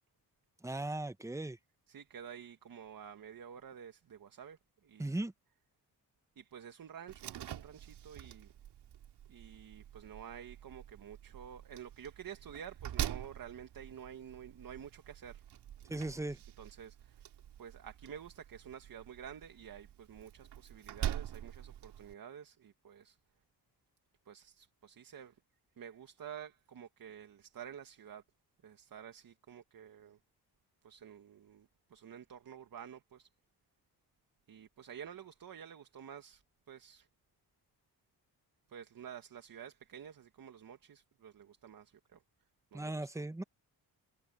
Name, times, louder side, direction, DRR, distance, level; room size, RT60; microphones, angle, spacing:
voice 1, 0.6-1.6 5.0-5.3 15.9-16.4 42.7-43.4, right 2 dB, 5° right, 0.9 m, -37 dB
voice 2, 1.9-5.3 6.4-8.5 9.3-15.4 16.1-16.2 16.6-17.2 17.6-23.2 24.3-25.4 25.8-28.2 28.6-30.2 30.8-33.3 34.5-37.1 38.7-42.2 42.7-43.3, right 8 dB, 55° right, 1.9 m, -50 dB
Slam, 7.1-22.1, right 11 dB, 85° right, 2.4 m, -45 dB
cardioid pair, 85°, 40 cm